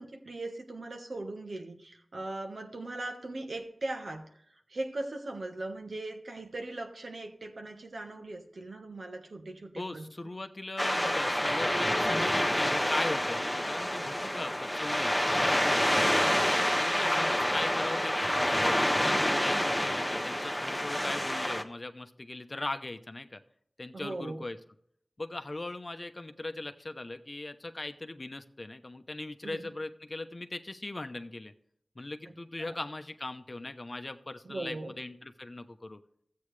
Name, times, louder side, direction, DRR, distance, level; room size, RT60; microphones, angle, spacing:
voice 1, 0.0-4.3 4.7-10.1 14.2-14.4 16.9-17.3 21.0-21.2 23.9-24.4 29.4-29.7 32.2-32.7 34.4-34.9, right 2 dB, 75° right, 3 dB, 1.3 m, -39 dB
voice 2, 9.8-16.3 16.7-23.4 23.8-24.6 25.2-31.5 32.0-36.0, left 2 dB, 45° left, 9 dB, 0.8 m, -39 dB
sound 1, 10.8-21.6, left 1 dB, 5° left, 1.0 m, -28 dB
13.5 x 8.5 x 3.3 m, 0.69 s
wide cardioid pair, 45°, 0 cm